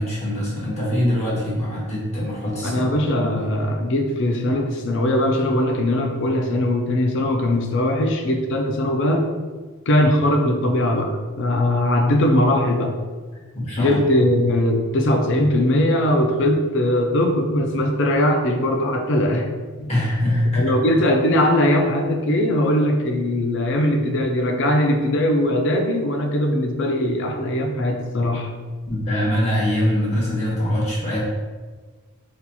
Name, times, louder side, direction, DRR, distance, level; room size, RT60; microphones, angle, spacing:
voice 1, 0.0-2.8 3.2-3.3 13.6-14.0 19.9-20.7 28.9-31.2, left 1 dB, 30° left, -6 dB, 1.0 m, -23 dB
voice 2, 2.6-9.3 9.9-11.1 11.4-12.9 13.8-19.5 19.8-19.9 20.5-28.5, left 1 dB, 55° left, 4 dB, 0.4 m, -20 dB
4.1 x 2.7 x 2.3 m, 1.4 s
head